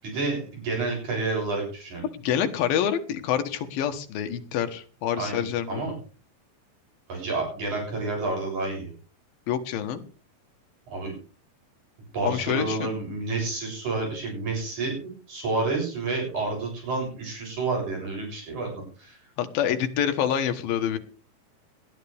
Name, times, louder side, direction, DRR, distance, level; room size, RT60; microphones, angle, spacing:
voice 1, 0.0-2.1 5.2-5.9 7.1-8.9 10.9-11.1 12.1-19.2, right 3 dB, 55° right, 0 dB, 9.0 m, -29 dB
voice 2, 2.1-5.8 9.5-10.0 12.2-12.9 19.4-21.0, left 9 dB, 80° left, 7 dB, 3.1 m, -27 dB
20.0 x 12.0 x 3.5 m, 0.37 s
omnidirectional pair, 4.1 m